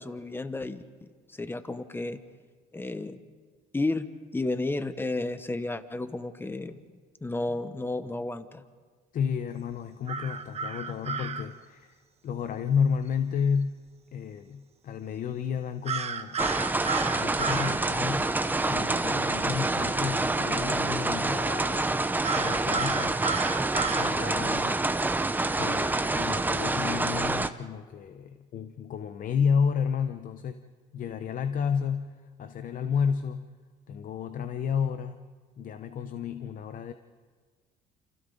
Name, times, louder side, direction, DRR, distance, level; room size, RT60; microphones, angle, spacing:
voice 1, 0.0-2.2 2.7-3.2 3.7-4.1 4.3-6.8 7.2-8.6, left 2 dB, 15° left, 11 dB, 1.1 m, -32 dB
voice 2, 9.1-12.0 12.2-13.8 14.1-16.4 17.1-21.8 22.3-23.2 23.9-24.9 25.6-30.6 30.9-33.5 33.9-35.2 35.6-36.9, left 7 dB, 55° left, 9 dB, 0.9 m, -31 dB
sound 1, 10.1-11.4 15.9-17.8 22.2-24.1, right 6 dB, 40° right, 1.2 m, -32 dB
sound 2, 16.4-27.5, right 2 dB, 10° right, 0.7 m, -27 dB
29.0 x 27.5 x 4.0 m, 1.5 s
cardioid pair, 110°, 17 cm